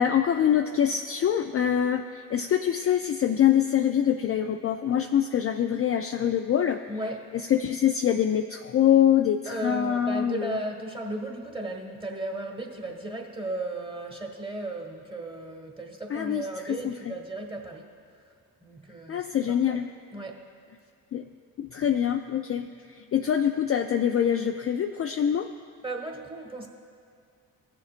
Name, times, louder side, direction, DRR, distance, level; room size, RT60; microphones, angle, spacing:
voice 1, 0.0-6.8 7.3-10.6 16.1-16.9 19.1-19.9 21.1-21.2 21.6-22.7 22.9-25.5, left 9 dB, 35° left, 6 dB, 0.4 m, -24 dB
voice 2, 6.9-7.3 9.4-17.9 18.6-19.8 20.1-20.4 25.8-26.7, right 2 dB, 15° right, 2 dB, 1.5 m, -35 dB
15.5 x 6.8 x 2.5 m, 2.4 s
supercardioid pair, 55°, 41 cm